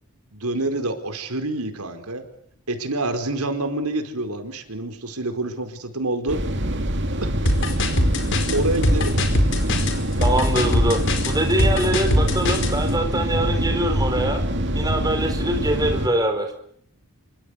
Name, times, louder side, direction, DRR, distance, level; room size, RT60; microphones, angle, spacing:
voice 1, 0.3-2.2 2.7-6.4 7.2-7.3 8.5-9.1, right 2 dB, 85° right, 7 dB, 4.7 m, -27 dB
sound 1, 6.3-16.1, right 1 dB, 55° right, 2.7 m, -24 dB
sound 2, 7.5-12.7, left 1 dB, 55° left, 4.8 m, -22 dB
voice 2, 10.2-11.0 11.2-14.4 14.7-16.5, right 1 dB, 15° right, 5 dB, 4.5 m, -23 dB
28.0 x 25.0 x 8.3 m, 0.65 s
head